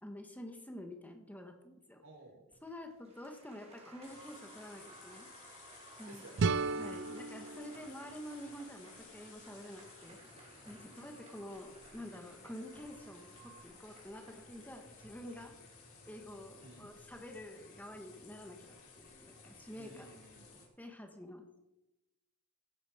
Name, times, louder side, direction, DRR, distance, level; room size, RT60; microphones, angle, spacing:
voice 1, 0.0-2.0 2.6-5.3 6.0-6.2 6.8-10.2 10.6-15.5 16.1-20.1 20.8-21.4, left 1 dB, 10° left, 4 dB, 1.5 m, -48 dB
voice 2, 2.0-2.4 6.1-6.5 7.7-8.0 10.9-11.2 16.6-16.9 19.7-20.6, right 2 dB, 75° right, 1 dB, 4.5 m, -56 dB
Applause, 2.5-19.6, right 3 dB, 30° right, 3.2 m, -60 dB
sound 1, 4.0-20.7, left 4 dB, 90° left, 5.4 m, -57 dB
sound 2, 6.4-9.3, right 4 dB, 60° right, 0.4 m, -36 dB
16.0 x 10.5 x 5.1 m, 0.96 s
head